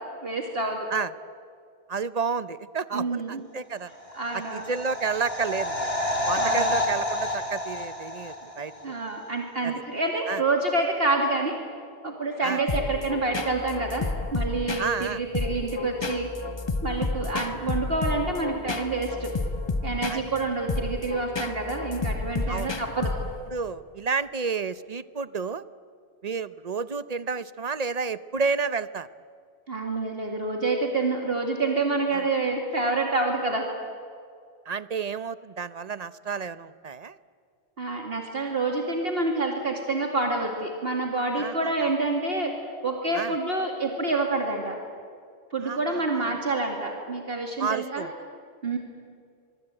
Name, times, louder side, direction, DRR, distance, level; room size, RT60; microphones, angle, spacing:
voice 1, 0.2-0.9 2.9-3.4 4.1-4.7 6.4-6.7 8.8-11.6 12.0-14.0 14.3-16.3 16.8-19.3 19.8-23.1 29.7-33.6 37.8-42.5 42.8-44.8 45.5-48.1 48.6-48.8, right 3 dB, 60° right, 2 dB, 2.7 m, -27 dB
voice 2, 1.9-3.9 4.3-5.9 6.2-9.0 9.6-9.7 10.3-10.4 12.4-12.6 14.8-15.2 20.1-20.2 22.5-22.7 23.5-25.6 26.2-29.1 32.1-32.2 34.7-37.2 41.4-41.5 43.1-43.4 45.6-46.3 47.6-48.1, right 5 dB, 40° right, 15 dB, 0.8 m, -30 dB
sound 1, 4.0-8.8 9.1-9.2, left 1 dB, 65° left, 4.1 m, -29 dB
sound 2, 12.7-23.5, left 3 dB, 25° left, 1.0 m, -31 dB
25.5 x 23.5 x 9.0 m, 2.3 s
omnidirectional pair, 1.1 m